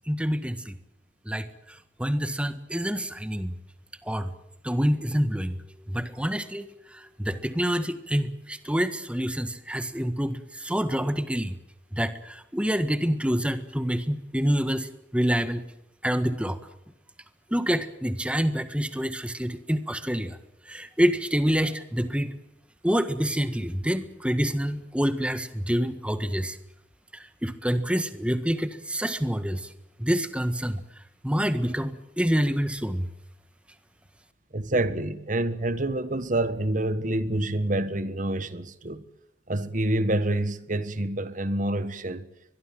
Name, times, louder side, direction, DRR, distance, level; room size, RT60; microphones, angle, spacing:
voice 1, 0.1-0.8 1.3-1.5 2.0-3.5 4.1-4.3 4.6-5.6 5.9-6.7 6.9-11.6 11.9-15.6 16.0-16.6 17.5-20.4 20.7-22.3 22.8-26.6 27.1-29.7 30.0-30.8 31.2-33.1, equal, 5° right, 1.6 m, -27 dB
voice 2, 34.5-39.0 39.5-42.3, right 1 dB, 45° right, 1.6 m, -27 dB
23.5 x 22.0 x 7.6 m
head